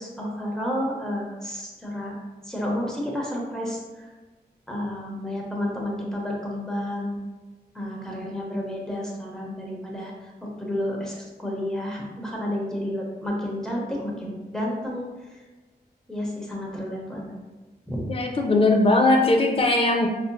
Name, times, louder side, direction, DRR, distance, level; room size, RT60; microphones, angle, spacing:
voice 1, 0.0-2.2 2.4-4.1 4.7-7.2 7.7-15.4 16.1-17.3 17.9-18.0, left 1 dB, 5° left, -3 dB, 0.7 m, -31 dB
voice 2, 18.0-20.1, left 2 dB, 35° left, 3 dB, 0.4 m, -19 dB
4.8 x 2.6 x 2.2 m, 1.3 s
wide cardioid pair, 150°, 17 cm